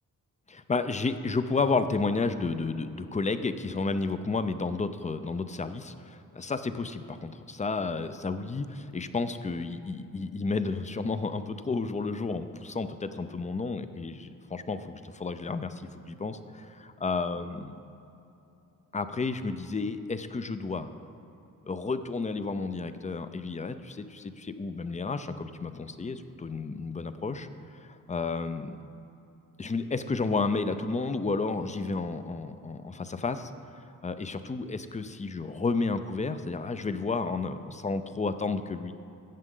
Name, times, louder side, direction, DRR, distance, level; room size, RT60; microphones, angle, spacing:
voice 1, 0.5-17.8 18.9-20.9 21.7-27.5 27.7-28.8 29.6-38.9, left 4 dB, 20° left, 11 dB, 0.5 m, -32 dB
14.0 x 8.0 x 3.8 m, 2.9 s
cardioid pair, 80°, 33 cm